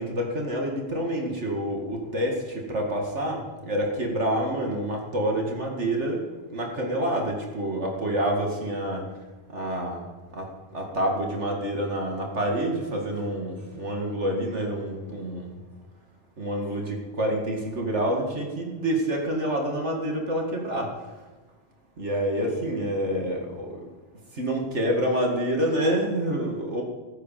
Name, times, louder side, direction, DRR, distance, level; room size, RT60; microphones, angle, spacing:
voice 1, 0.0-6.2 6.5-9.0 9.5-10.0 10.3-10.5 10.7-15.5 16.4-20.9 22.0-23.8 24.4-26.8, right 1 dB, 30° right, 1 dB, 1.2 m, -27 dB
16.5 x 9.5 x 7.5 m, 1.2 s
omnidirectional pair, 4.6 m